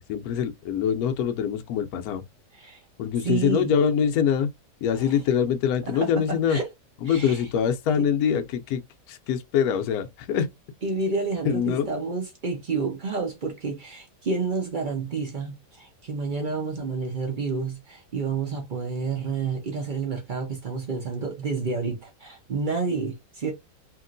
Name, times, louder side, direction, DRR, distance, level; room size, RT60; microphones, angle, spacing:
voice 1, 0.1-2.2 3.0-4.5 4.8-6.6 7.0-8.8 9.1-10.5 11.4-11.9, left 8 dB, 70° left, 1.0 m, -24 dB
voice 2, 3.2-3.7 4.9-5.2 5.9-6.1 6.5-6.7 7.1-7.4 7.9-8.1 10.8-23.5, right 4 dB, 50° right, 0.5 m, -29 dB
2.9 x 2.9 x 2.5 m
omnidirectional pair, 1.8 m